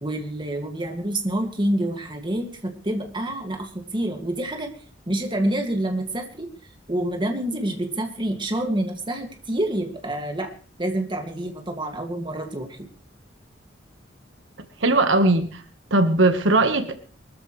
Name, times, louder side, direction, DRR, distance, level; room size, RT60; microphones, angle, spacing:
voice 1, 0.0-4.7 5.1-6.5 6.9-10.5 10.8-12.9, right 1 dB, 25° right, 3 dB, 2.1 m, -27 dB
voice 2, 14.8-15.6 15.9-16.9, right 2 dB, 80° right, 8 dB, 1.4 m, -19 dB
23.0 x 14.0 x 3.2 m, 0.41 s
head